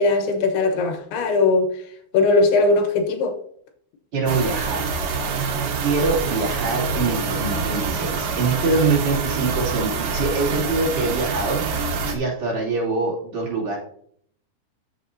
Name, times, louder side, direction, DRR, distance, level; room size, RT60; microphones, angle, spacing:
voice 1, 0.0-1.8 2.1-3.4, left 3 dB, 85° left, 3.3 m, -19 dB
voice 2, 4.1-4.9 5.8-13.8, right 3 dB, 45° right, 3.8 m, -24 dB
sound 1, 4.3-12.2, right 4 dB, 75° right, 3.2 m, -26 dB
13.5 x 6.7 x 2.7 m
omnidirectional pair, 4.5 m